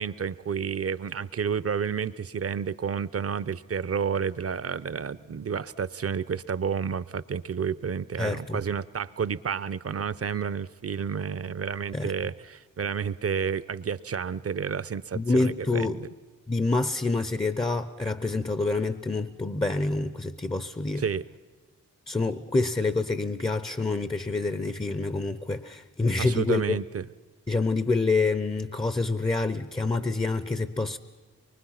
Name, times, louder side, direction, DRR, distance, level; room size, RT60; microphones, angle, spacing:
voice 1, 0.0-16.1 21.0-21.2 26.2-27.1, right 6 dB, 45° right, 17 dB, 0.7 m, -30 dB
voice 2, 8.2-8.6 11.9-12.1 15.1-16.0 16.5-21.0 22.1-26.8 27.5-31.0, left 3 dB, 15° left, 13 dB, 0.7 m, -27 dB
24.0 x 22.5 x 5.8 m, 1.4 s
cardioid pair, 55°, 33 cm